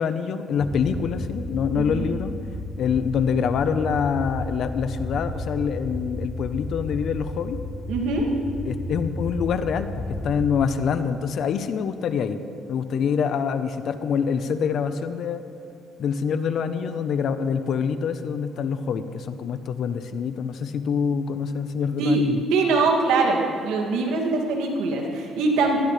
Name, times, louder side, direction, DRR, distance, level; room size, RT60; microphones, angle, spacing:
voice 1, 0.0-2.3 2.8-7.6 8.6-12.4 12.7-15.4 16.0-22.4, left 6 dB, 65° left, 10 dB, 0.9 m, -25 dB
sound 1, 0.6-10.6, left 1 dB, 30° left, 3.2 m, -33 dB
voice 2, 1.7-2.1 7.9-8.3 22.0-25.8, right 3 dB, 90° right, 0 dB, 2.5 m, -23 dB
20.5 x 16.5 x 3.4 m, 2.5 s
cardioid pair, 85°, 0 cm